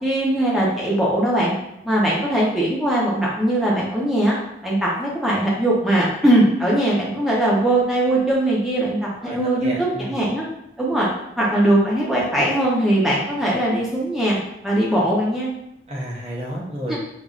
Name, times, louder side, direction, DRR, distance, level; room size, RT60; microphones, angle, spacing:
voice 1, 0.0-1.5 1.8-4.4 4.6-9.7 10.0-10.5 10.8-11.1 11.4-14.4 14.6-15.5 16.9-17.0, right 1 dB, ahead, -6 dB, 0.9 m, -20 dB
voice 2, 9.2-10.2 15.9-17.0, equal, 35° right, -4 dB, 0.9 m, -31 dB
5.4 x 2.7 x 2.4 m, 0.80 s
head